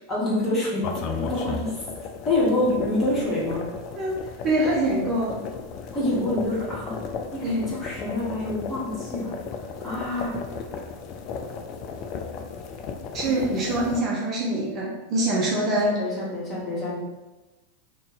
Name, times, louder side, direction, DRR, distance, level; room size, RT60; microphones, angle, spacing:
voice 1, 0.1-0.8 1.2-1.8 2.2-3.6 5.9-6.9 7.3-9.3 9.8-10.4 13.2-13.3 15.8-17.0, left 1 dB, 25° left, -6 dB, 1.2 m, -26 dB
sound 1, 0.8-14.0, left 5 dB, 40° left, 0.3 m, -35 dB
voice 2, 4.4-5.3 7.4-7.7 13.1-15.9, right 1 dB, 30° right, -4 dB, 0.6 m, -24 dB
2.5 x 2.3 x 3.9 m, 1.1 s
figure-of-eight pair, 90°, 0 cm